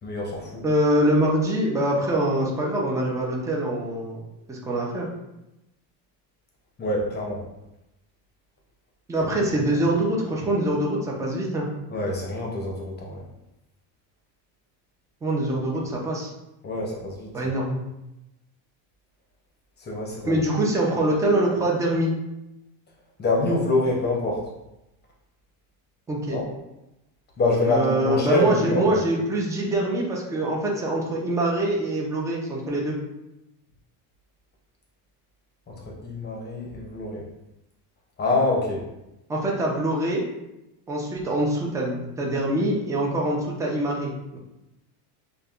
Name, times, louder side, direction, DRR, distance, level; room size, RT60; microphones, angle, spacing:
voice 1, 0.0-0.6 6.8-7.4 11.9-13.2 16.6-17.5 19.8-20.4 23.2-24.5 26.3-26.5 27.4-29.0 35.7-37.3 38.2-38.9, left 2 dB, 20° left, -1 dB, 0.7 m, -26 dB
voice 2, 0.6-4.2 4.5-5.1 9.1-11.7 15.2-16.3 17.3-17.8 20.2-22.1 26.1-26.4 27.7-33.0 39.3-40.2 40.9-44.4, right 1 dB, 5° right, -2 dB, 0.4 m, -24 dB
5.2 x 2.2 x 2.4 m, 0.92 s
cardioid pair, 130°, 46 cm